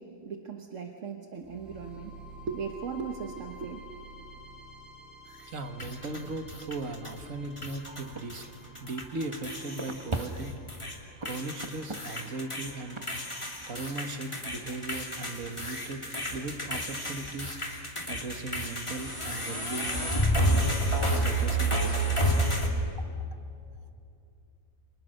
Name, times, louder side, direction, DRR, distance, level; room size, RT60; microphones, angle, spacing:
voice 1, 0.0-2.1 2.5-3.8, right 6 dB, 70° right, 3 dB, 1.6 m, -38 dB
sound 1, 1.4-15.4, equal, ahead, 3.7 m, -51 dB
voice 2, 5.5-8.5 8.8-10.5 11.2-13.0 13.7-16.0 16.3-17.6 18.1-20.7 21.1-22.5, right 2 dB, 90° right, 6 dB, 2.0 m, -38 dB
sound 2, 5.8-7.2 7.6-8.4 8.8-10.9 11.2-22.7, right 1 dB, 20° left, 2.7 m, -30 dB
sound 3, 7.8-15.0, right 2 dB, 25° right, 1.2 m, -43 dB
29.5 x 26.0 x 6.6 m, 2.6 s
omnidirectional pair, 1.3 m